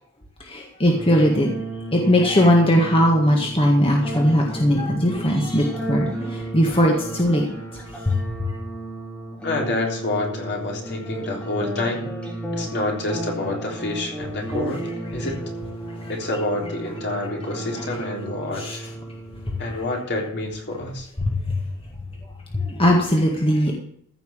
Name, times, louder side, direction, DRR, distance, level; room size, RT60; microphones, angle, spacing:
voice 1, 0.5-1.5 1.9-7.5 8.1-8.2 18.6-18.8 21.2-21.6 22.5-23.7, equal, 25° left, 0 dB, 1.8 m, -19 dB
sound 1, 0.8-19.8, right 1 dB, 5° left, 3.1 m, -33 dB
voice 2, 9.4-12.1 12.5-15.4 16.1-18.9 19.6-21.1, left 2 dB, 55° left, 0 dB, 3.7 m, -28 dB
15.0 x 5.9 x 7.5 m, 0.67 s
head